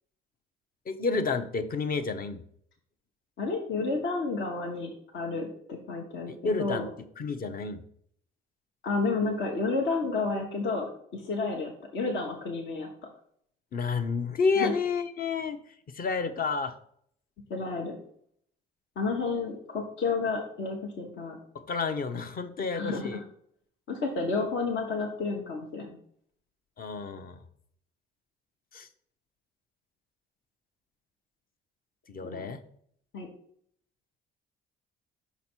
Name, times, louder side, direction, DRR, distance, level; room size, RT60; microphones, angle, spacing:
voice 1, 0.9-2.4 6.3-6.9 7.2-7.8 13.7-15.6 15.9-16.7 21.7-23.2 26.8-27.4 28.7-28.9 32.1-32.6, left 4 dB, 45° left, 8 dB, 0.8 m, -30 dB
voice 2, 3.4-6.9 8.8-12.9 14.6-14.7 17.5-18.0 19.0-21.4 22.7-23.2 23.9-26.0 32.2-32.4 33.1-33.3, left 3 dB, 65° left, 1 dB, 1.2 m, -31 dB
5.9 x 4.1 x 4.4 m, 0.63 s
supercardioid pair, 70°, 21 cm